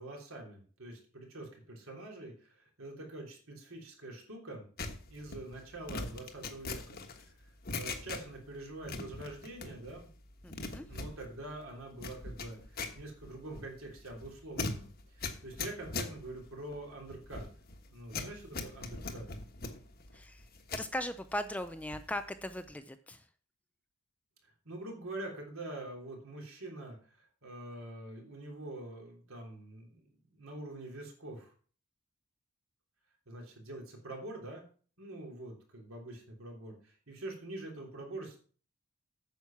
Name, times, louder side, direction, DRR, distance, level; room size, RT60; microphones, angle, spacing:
voice 1, 0.0-4.6 5.1-10.1 10.9-17.5 17.9-19.3 24.6-31.5 33.3-34.6 35.0-38.4, right 2 dB, 65° right, 0 dB, 3.4 m, -45 dB
sound 1, 4.8-8.5 8.8-10.0 10.3-20.9 21.3-22.2 22.4-22.7, left 3 dB, 45° left, 1.2 m, -41 dB
voice 2, 10.4-10.9 20.1-20.4 20.7-23.2, left 1 dB, 5° left, 10 dB, 0.4 m, -38 dB
9.2 x 7.1 x 5.9 m, 0.42 s
head